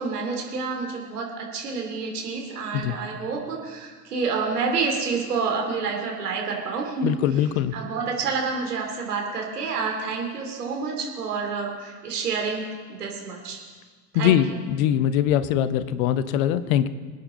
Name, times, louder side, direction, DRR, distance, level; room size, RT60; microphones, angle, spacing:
voice 1, 0.0-7.1 7.7-13.6 14.1-14.4, right 4 dB, 70° right, 1 dB, 2.8 m, -28 dB
voice 2, 7.0-7.8 14.1-16.9, left 10 dB, 60° left, 14 dB, 0.9 m, -22 dB
24.5 x 9.4 x 4.0 m, 1.5 s
figure-of-eight pair, 65°, 48 cm